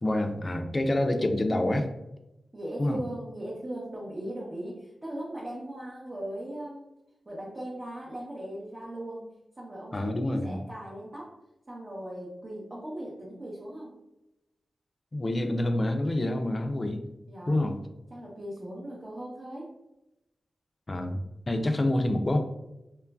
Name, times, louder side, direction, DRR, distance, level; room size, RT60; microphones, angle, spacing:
voice 1, 0.0-1.9 2.8-3.0 9.9-10.6 15.1-17.0 17.5-17.8 20.9-22.4, left 1 dB, 35° left, 6 dB, 0.4 m, -27 dB
voice 2, 2.5-6.9 7.3-9.3 9.6-10.1 10.4-11.3 11.7-13.9 17.3-17.6 18.1-19.7, right 1 dB, 35° right, -6 dB, 0.7 m, -38 dB
3.0 x 2.3 x 2.2 m, 0.92 s
cardioid pair, 60°, 0 cm